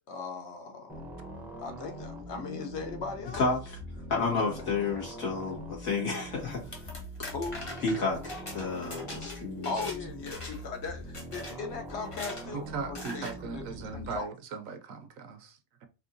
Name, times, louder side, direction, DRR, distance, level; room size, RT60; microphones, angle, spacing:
voice 1, 0.1-1.0 1.6-3.4 4.4-4.5 7.3-7.6 9.6-13.2 13.5-13.6 14.0-14.3, left 4 dB, 60° left, 0.9 m, -38 dB
sound 1, 0.9-14.2, right 1 dB, ahead, 0.5 m, -43 dB
voice 2, 3.3-3.8 4.1-6.9 7.8-9.7, left 4 dB, 80° left, 2.1 m, -31 dB
sound 2, 6.5-10.0 10.3-10.7 11.1-11.6 12.0-12.5 12.9-13.4, left 2 dB, 25° left, 0.8 m, -41 dB
voice 3, 12.5-15.9, right 5 dB, 75° right, 1.0 m, -39 dB
4.5 x 2.8 x 2.6 m
omnidirectional pair, 1.5 m